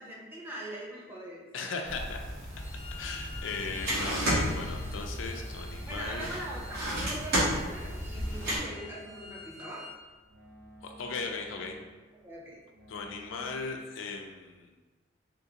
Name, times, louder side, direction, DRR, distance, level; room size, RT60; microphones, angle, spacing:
voice 1, 0.0-1.4 5.9-9.9 12.2-12.6, right 1 dB, 10° right, -5 dB, 0.6 m, -42 dB
voice 2, 1.5-2.2 2.9-6.2 10.8-11.8 12.9-14.7, left 4 dB, 75° left, 2 dB, 0.4 m, -37 dB
sound 1, 1.9-8.6, equal, 55° right, 1.1 m, -33 dB
Bowed string instrument, 2.5-10.0, left 3 dB, 30° right, 1.1 m, -50 dB
sound 2, 3.5-13.6, right 1 dB, 85° right, 1.1 m, -54 dB
3.6 x 2.5 x 2.8 m, 1.3 s
head